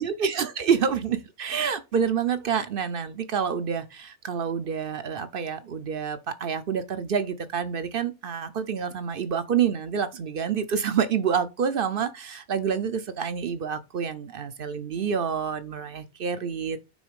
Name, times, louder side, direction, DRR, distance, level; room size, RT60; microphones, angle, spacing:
voice 1, 0.0-16.8, right 7 dB, 55° right, 0.8 m, -28 dB
6.2 x 4.1 x 5.1 m
omnidirectional pair, 1.2 m